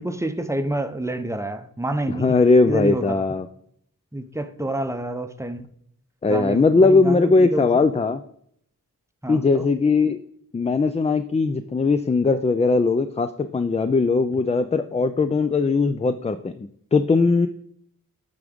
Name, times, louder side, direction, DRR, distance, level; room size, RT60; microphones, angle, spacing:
voice 1, 0.0-2.4 2.7-3.2 4.1-5.7 6.2-7.9 9.2-9.7, right 1 dB, 10° right, 0.7 m, -28 dB
voice 2, 2.2-3.5 6.2-8.2 9.3-10.2 10.5-17.5, left 4 dB, 20° left, 0.3 m, -19 dB
9.6 x 3.6 x 5.2 m
cardioid pair, 55°, 35 cm